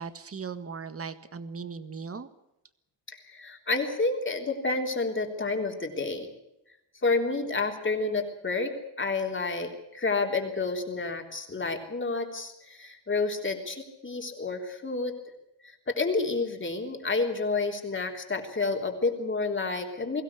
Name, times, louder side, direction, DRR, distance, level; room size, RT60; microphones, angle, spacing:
voice 1, 0.0-2.3, right 5 dB, 30° right, 12 dB, 1.6 m, -38 dB
voice 2, 3.1-6.3 7.0-15.1 15.6-20.2, left 3 dB, 25° left, 4 dB, 3.5 m, -30 dB
22.5 x 16.5 x 8.4 m, 0.86 s
cardioid pair, 130°, 43 cm